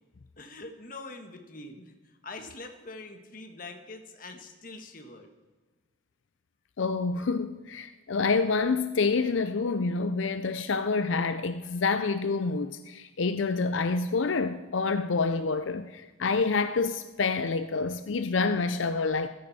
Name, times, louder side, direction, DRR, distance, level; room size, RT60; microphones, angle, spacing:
voice 1, 0.4-5.3, left 2 dB, 45° left, 1.6 m, -44 dB
voice 2, 6.8-19.3, left 4 dB, 85° left, 0.6 m, -27 dB
15.0 x 14.0 x 4.3 m
head